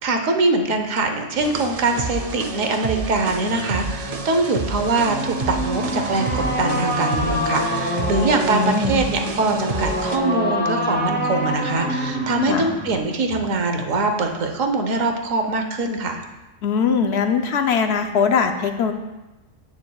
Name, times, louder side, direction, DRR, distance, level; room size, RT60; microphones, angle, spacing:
voice 1, 0.0-16.2, right 3 dB, 75° right, 5 dB, 1.3 m, -23 dB
sound 1, 1.4-10.2, right 3 dB, 50° right, 0.4 m, -30 dB
sound 2, 5.0-13.0, equal, 10° left, 1.3 m, -26 dB
voice 2, 8.5-9.0 12.5-12.7 16.6-18.9, left 6 dB, 65° left, 6 dB, 0.8 m, -21 dB
10.5 x 8.7 x 2.3 m, 1.1 s
omnidirectional pair, 1.4 m